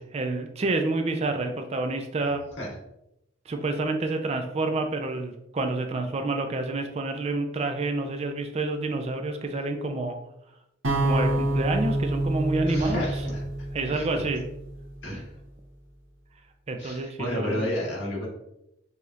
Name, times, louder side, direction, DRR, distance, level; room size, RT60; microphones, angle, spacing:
voice 1, 0.0-2.4 3.5-10.2 11.0-13.0 13.7-14.4 15.1-15.2 16.7-17.7, right 2 dB, 30° right, 5 dB, 0.4 m, -28 dB
sound 1, 10.8-15.0, right 1 dB, 75° right, 0.9 m, -27 dB
voice 2, 12.7-13.4 13.9-14.1 15.0-15.3 16.8-18.3, left 1 dB, 70° left, -4 dB, 1.5 m, -31 dB
4.9 x 2.8 x 2.4 m, 0.83 s
head